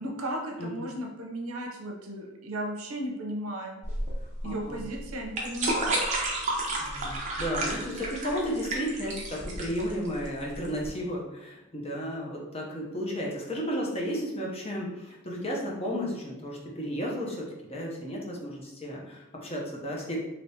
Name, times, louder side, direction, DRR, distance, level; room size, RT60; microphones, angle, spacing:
voice 1, 0.0-3.8 4.4-6.0, right 1 dB, 85° right, 1 dB, 0.6 m, -35 dB
sound 1, 3.8-10.9, right 2 dB, 35° right, 0.6 m, -31 dB
voice 2, 4.4-4.8 6.8-20.2, equal, 30° left, -2 dB, 0.6 m, -33 dB
3.3 x 2.8 x 2.7 m, 1.0 s
head